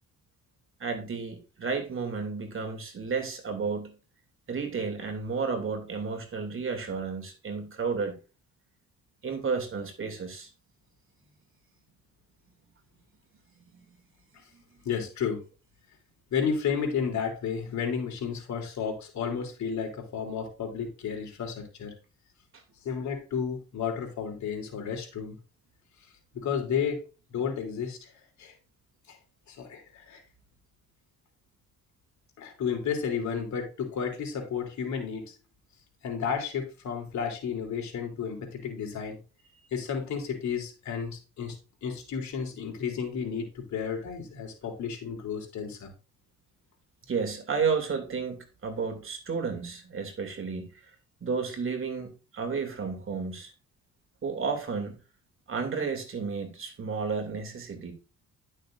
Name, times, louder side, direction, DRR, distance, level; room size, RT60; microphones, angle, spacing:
voice 1, 0.8-3.9 4.5-8.2 9.2-10.5 13.7-13.8 47.1-50.7 51.2-53.5 54.2-55.0 55.5-57.9, right 5 dB, 45° right, 2.6 m, -32 dB
voice 2, 14.8-15.4 16.3-21.9 22.8-25.4 26.3-27.0 27.3-28.1 28.4-28.5 29.1-29.2 29.5-30.2 32.4-35.3 36.0-39.2 39.7-45.9, left 6 dB, 65° left, 3.1 m, -32 dB
11.5 x 6.5 x 2.6 m
cardioid pair, 90°, 30 cm